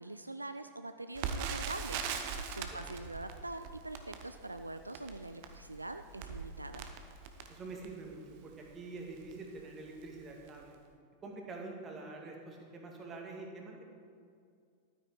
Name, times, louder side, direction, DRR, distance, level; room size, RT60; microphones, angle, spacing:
voice 1, 0.0-6.9, right 2 dB, 85° right, 9 dB, 0.3 m, -44 dB
Crackle, 1.2-8.1 8.7-8.8 9.1-9.4 10.0-10.2 10.5-10.6, right 6 dB, 45° right, 0.9 m, -41 dB
voice 2, 7.5-10.8 11.2-13.8, right 3 dB, 25° right, 1 dB, 2.0 m, -46 dB
12.0 x 9.5 x 4.7 m, 2.3 s
figure-of-eight pair, 90°, 0 cm